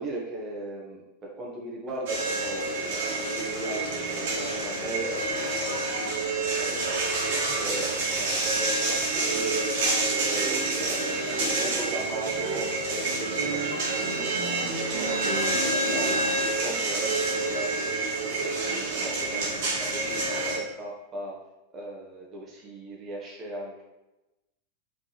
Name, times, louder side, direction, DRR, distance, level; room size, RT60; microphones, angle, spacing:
voice 1, 0.0-6.1 6.5-10.5 10.9-13.6 14.2-16.2 16.6-18.0 18.4-19.5 19.8-21.4 21.7-23.8, right 2 dB, 25° right, -3 dB, 1.6 m, -38 dB
sound 1, 2.1-20.6, right 2 dB, 50° right, 2.0 m, -28 dB
5.5 x 4.6 x 4.3 m, 0.99 s
figure-of-eight pair, 90°, 0 cm